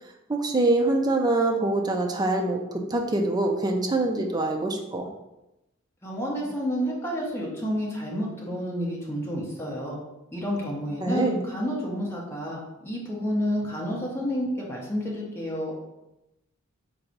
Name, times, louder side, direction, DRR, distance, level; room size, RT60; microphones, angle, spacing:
voice 1, 0.3-5.1 11.0-11.4, right 2 dB, 20° right, 2 dB, 0.4 m, -24 dB
voice 2, 6.0-10.0 10.3-15.7, equal, 10° left, -4 dB, 0.9 m, -30 dB
3.8 x 2.7 x 4.5 m, 0.94 s
head